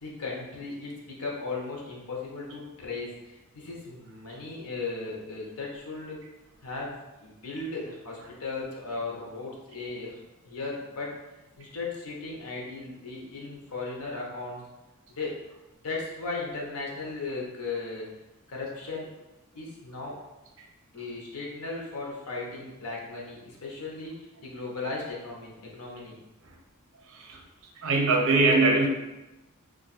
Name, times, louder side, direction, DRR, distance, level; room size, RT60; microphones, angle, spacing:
voice 1, 0.0-6.2 6.6-10.2 10.4-11.1 11.6-14.6 15.2-15.3 15.8-18.1 18.5-19.1 19.5-20.2 20.9-26.2, left 3 dB, 80° left, -2 dB, 0.9 m, -36 dB
voice 2, 27.8-28.9, right 3 dB, 60° right, 2 dB, 0.6 m, -22 dB
2.5 x 2.5 x 4.0 m, 1.0 s
head